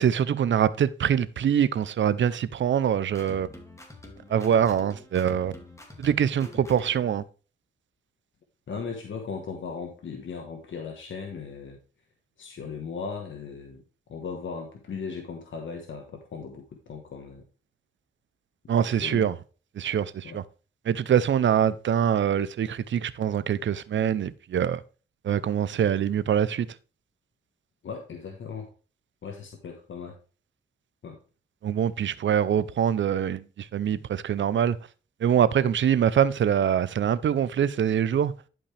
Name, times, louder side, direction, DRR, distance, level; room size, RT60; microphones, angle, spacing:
voice 1, 0.0-3.5 4.3-5.5 6.0-7.2 18.7-19.3 19.8-20.4 20.9-24.8 25.2-26.7 31.6-34.8 35.2-38.3, right 9 dB, 75° right, 0.6 m, -24 dB
sound 1, 3.1-7.2, left 1 dB, 15° left, 2.3 m, -46 dB
voice 2, 8.7-11.8 12.4-13.8 14.1-17.4 18.8-19.3 20.2-20.4 27.8-28.7 29.2-30.2 31.0-31.2, left 5 dB, 80° left, 1.3 m, -37 dB
11.0 x 5.3 x 3.3 m
cardioid pair, 85°, 20 cm